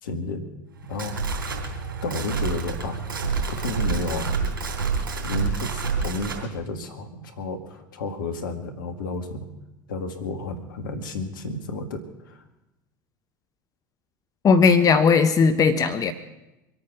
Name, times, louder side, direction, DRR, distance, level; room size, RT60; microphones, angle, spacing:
voice 1, 0.0-0.5 0.9-1.3 2.0-3.0 3.5-4.3 4.8-4.9 5.2-9.5 9.9-12.4, left 3 dB, 75° left, 7 dB, 1.9 m, -32 dB
sound 1, 0.8-6.4, right 5 dB, 85° right, 3.4 m, -28 dB
voice 2, 14.4-16.1, left 5 dB, 35° left, 10 dB, 1.1 m, -17 dB
24.5 x 8.8 x 6.1 m, 0.95 s
hypercardioid pair, 75°, 11 cm